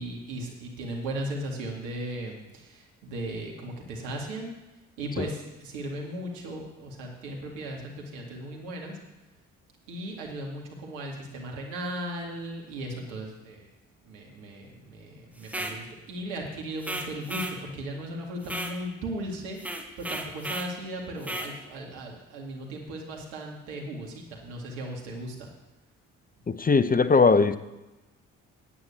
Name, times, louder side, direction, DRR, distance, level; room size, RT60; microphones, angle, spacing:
voice 1, 0.0-4.5 5.0-9.0 9.9-13.7 14.0-25.5, right 1 dB, 80° right, 0 dB, 2.1 m, -37 dB
sound 1, 15.4-15.8 16.8-17.6 18.4-18.8 19.6-20.7 21.2-21.5, right 1 dB, 5° right, 1.7 m, -34 dB
voice 2, 26.5-27.6, left 4 dB, 25° left, 13 dB, 0.8 m, -20 dB
9.6 x 9.0 x 7.2 m, 1.0 s
hypercardioid pair, 45°, 37 cm